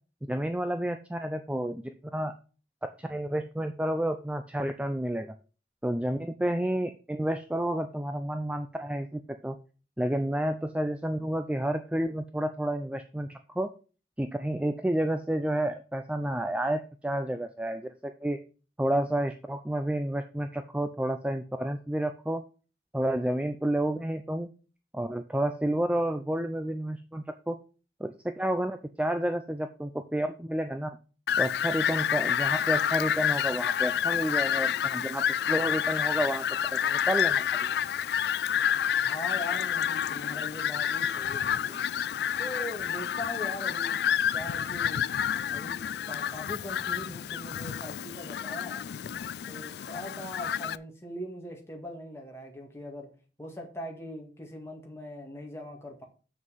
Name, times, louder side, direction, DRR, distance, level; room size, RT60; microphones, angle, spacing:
voice 1, 0.3-2.3 2.8-5.3 5.8-9.6 10.0-13.7 14.2-18.4 18.8-22.4 22.9-24.5 24.9-27.6 28.0-31.0 31.4-36.5 36.7-37.7, right 1 dB, 5° right, 8 dB, 0.4 m, -30 dB
Fowl, 31.3-50.8, left 9 dB, 65° left, 0.3 m, -29 dB
voice 2, 39.0-41.8 42.4-45.0 45.5-48.9 49.5-53.1 53.4-56.0, left 1 dB, 15° left, 1 dB, 2.0 m, -41 dB
7.3 x 6.2 x 5.6 m, 0.36 s
head